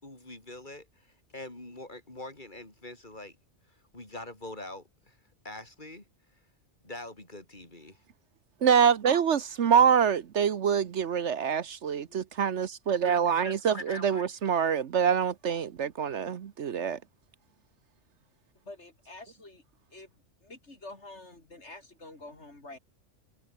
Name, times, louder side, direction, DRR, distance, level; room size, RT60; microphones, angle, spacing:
voice 1, 0.0-3.4 3.9-5.2 5.4-6.1 6.8-8.0 9.7-9.9 12.1-12.2 13.1-14.3, left 2 dB, 40° left, 4.7 m, -44 dB
voice 2, 8.6-17.0, right 7 dB, 65° right, 1.2 m, -25 dB
voice 3, 18.6-19.6 19.9-20.1 20.4-22.8, left 2 dB, 60° left, 4.6 m, -47 dB
omnidirectional pair, 1.3 m